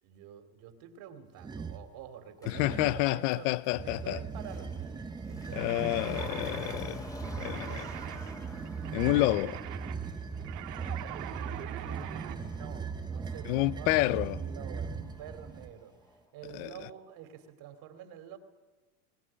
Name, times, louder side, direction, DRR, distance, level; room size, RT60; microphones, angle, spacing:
voice 1, 0.0-3.5 3.8-6.4 12.1-18.4, right 9 dB, 45° right, 2.8 m, -48 dB
sound 1, 1.4-1.9 2.5-3.1 3.7-15.7, right 5 dB, 10° right, 0.8 m, -39 dB
Motor vehicle (road), 2.4-2.5 3.3-16.2 16.5-16.6, left 1 dB, 5° left, 1.9 m, -49 dB
voice 2, 2.5-4.2 5.5-7.0 7.4-7.9 8.9-9.6 13.5-14.4 16.5-16.7, left 17 dB, 55° left, 0.8 m, -29 dB
sound 2, 5.5-12.4, right 13 dB, 80° right, 2.2 m, -44 dB
22.0 x 18.0 x 10.0 m
supercardioid pair, 150°, 48 cm